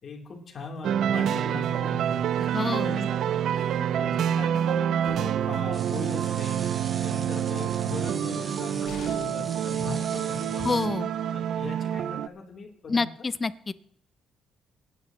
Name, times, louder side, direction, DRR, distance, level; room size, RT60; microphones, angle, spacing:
voice 1, 0.0-2.2 2.8-6.6 7.0-10.9 11.3-13.1, left 3 dB, 50° left, 0 dB, 3.4 m, -39 dB
sound 1, 0.8-12.3, right 9 dB, 75° right, 0.5 m, -27 dB
voice 2, 2.4-3.1 10.6-11.1 12.9-13.7, left 4 dB, 30° left, 16 dB, 0.6 m, -28 dB
sound 2, 5.7-10.9, right 4 dB, 40° right, 1.4 m, -43 dB
sound 3, 8.8-9.6 11.5-11.6 12.0-12.1, left 4 dB, 85° left, 3.1 m, -43 dB
27.0 x 10.0 x 3.1 m, 0.76 s
cardioid pair, 90°, 0 cm